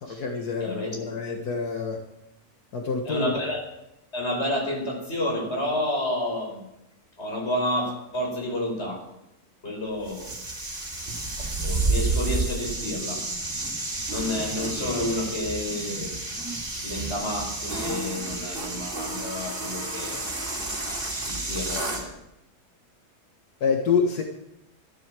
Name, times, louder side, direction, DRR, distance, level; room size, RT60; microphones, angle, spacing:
voice 1, 0.0-2.0 2.7-3.3 23.6-24.2, left 5 dB, 80° left, 2 dB, 2.0 m, -26 dB
voice 2, 0.6-1.0 3.0-3.6 4.1-6.7 7.2-9.1 9.6-10.3 11.6-13.2 14.1-16.2 16.8-20.3 21.2-22.1, left 1 dB, 45° left, 1 dB, 4.9 m, -30 dB
sound 1, 10.0-22.1, right 2 dB, 35° right, 3.5 m, -30 dB
13.5 x 12.5 x 7.6 m, 0.88 s
omnidirectional pair, 1.6 m